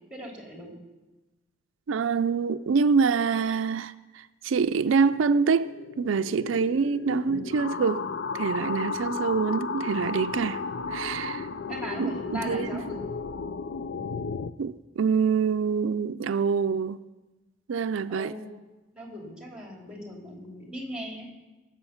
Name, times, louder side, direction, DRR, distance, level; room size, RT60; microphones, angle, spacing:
voice 1, 0.1-0.7 11.7-13.1 18.1-18.6 18.9-21.3, equal, 5° right, 2.8 m, -39 dB
voice 2, 1.9-8.0 8.3-10.6 10.9-11.5 12.0-12.7 14.6-17.0 17.7-18.3, right 5 dB, 90° right, 0.4 m, -25 dB
sound 1, 4.9-14.5, left 4 dB, 70° left, 0.5 m, -34 dB
18.5 x 7.4 x 5.7 m
head